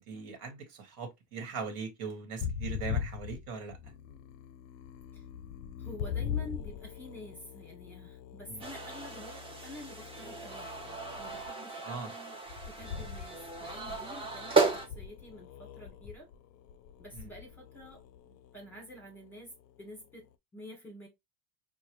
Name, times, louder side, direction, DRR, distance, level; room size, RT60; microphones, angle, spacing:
voice 1, 0.0-3.8 8.5-8.6 11.8-12.1 17.2-17.3, right 5 dB, 65° right, 1.3 m, -40 dB
sound 1, 2.4-11.5 12.5-20.1, left 8 dB, 65° left, 0.5 m, -42 dB
voice 2, 5.8-16.3 17.0-19.5 19.8-21.1, equal, 5° left, 1.3 m, -49 dB
sound 2, 8.6-14.9, right 4 dB, 15° right, 0.6 m, -34 dB
4.6 x 2.1 x 2.9 m
cardioid pair, 155°, 41 cm